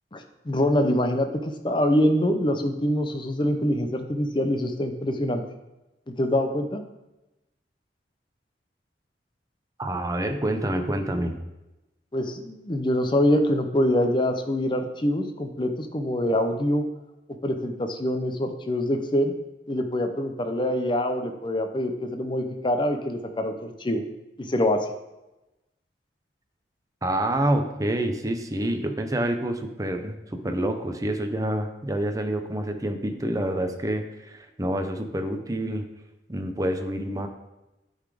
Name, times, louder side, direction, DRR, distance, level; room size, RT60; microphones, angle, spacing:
voice 1, 0.1-5.4 6.1-6.8 12.1-16.9 17.4-19.3 19.7-24.0 24.4-24.9, left 1 dB, 25° left, 6 dB, 0.7 m, -25 dB
voice 2, 9.8-11.4 27.0-35.9 36.3-37.3, right 1 dB, 20° right, 6 dB, 0.7 m, -27 dB
9.9 x 4.1 x 4.9 m, 0.99 s
head